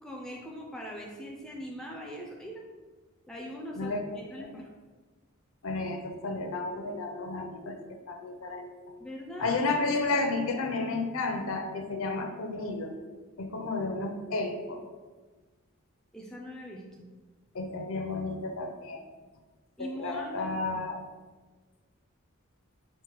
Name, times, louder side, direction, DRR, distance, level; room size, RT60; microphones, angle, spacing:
voice 1, 0.0-2.7 3.3-4.7 9.0-9.6 16.1-17.1 19.8-20.6, equal, 5° left, -1 dB, 0.3 m, -41 dB
voice 2, 3.8-4.2 4.4-4.6 5.6-7.8 8.1-8.7 9.4-12.9 13.4-14.8 17.5-19.0 19.8-21.0, left 3 dB, 65° left, 4 dB, 0.5 m, -32 dB
4.5 x 2.1 x 4.5 m, 1.3 s
head